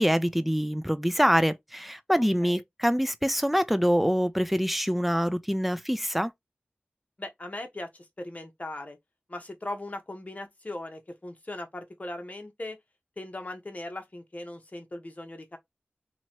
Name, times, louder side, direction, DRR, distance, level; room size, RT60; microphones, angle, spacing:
voice 1, 0.0-6.3, equal, ahead, 0.5 m, -25 dB
voice 2, 2.2-2.6 7.2-9.0 9.3-12.8 13.2-15.6, left 1 dB, 35° left, 1.1 m, -39 dB
3.0 x 2.9 x 4.4 m
wide cardioid pair, 75°, 4 cm